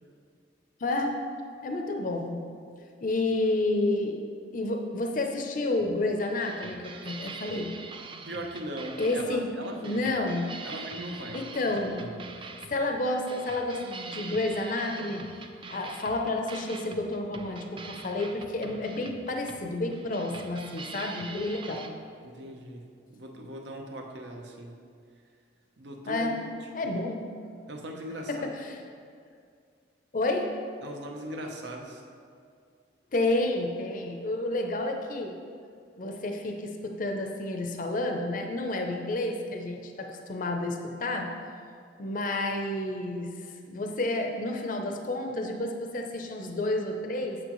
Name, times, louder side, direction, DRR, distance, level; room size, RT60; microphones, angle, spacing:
voice 1, 0.8-1.2 1.6-2.7 3.0-4.2 4.5-7.7 9.0-9.5 9.8-10.5 11.3-12.1 12.7-15.3 15.7-21.9 26.1-26.4 26.7-27.2 28.3-28.8 30.1-30.5 33.1-35.3 36.0-41.3 42.0-47.4, left 2 dB, 45° left, 3 dB, 0.5 m, -30 dB
sound 1, 5.8-21.9, right 4 dB, 30° right, 0.4 m, -44 dB
voice 2, 8.2-10.1 10.6-12.2 21.7-21.8 22.2-24.8 25.8-26.4 27.7-28.5 30.8-32.0, right 1 dB, 70° right, 2 dB, 0.8 m, -40 dB
8.0 x 7.1 x 3.0 m, 2.2 s
head